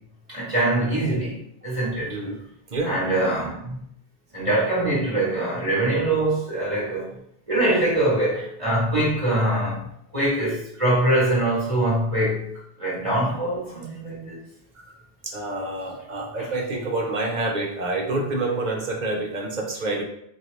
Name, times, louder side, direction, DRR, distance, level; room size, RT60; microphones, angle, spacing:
voice 1, 0.3-2.2 2.8-3.8 4.3-7.1 7.5-9.8 10.1-12.5 12.8-14.4, right 1 dB, 30° right, -7 dB, 1.2 m, -23 dB
voice 2, 2.0-2.4 2.7-3.0 14.9-20.0, right 2 dB, 50° right, 1 dB, 0.7 m, -28 dB
4.5 x 2.7 x 3.1 m, 0.72 s
omnidirectional pair, 1.1 m